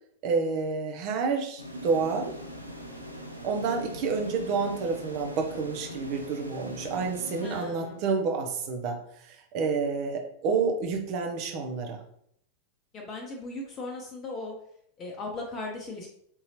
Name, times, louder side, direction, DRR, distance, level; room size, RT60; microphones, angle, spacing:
voice 1, 0.2-2.3 3.4-12.0, right 4 dB, 45° right, 3 dB, 0.7 m, -29 dB
sound 1, 1.6-8.3, equal, 90° left, 0.4 m, -42 dB
voice 2, 7.4-8.0 12.9-14.5 15.0-16.1, left 2 dB, 25° left, 0 dB, 0.7 m, -37 dB
3.7 x 2.8 x 2.9 m, 0.69 s
figure-of-eight pair, 90°, 0 cm